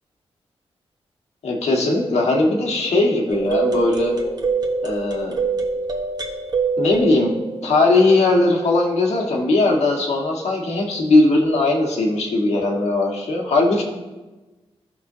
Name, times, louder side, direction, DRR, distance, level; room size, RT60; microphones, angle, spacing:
voice 1, 1.4-4.2 4.8-5.4 6.8-7.3 7.6-13.8, left 2 dB, 85° left, -1 dB, 1.6 m, -19 dB
sound 1, 3.3-8.4, right 4 dB, 40° right, 1.1 m, -25 dB
15.0 x 6.1 x 2.8 m, 1.2 s
wide cardioid pair, 165°, 11 cm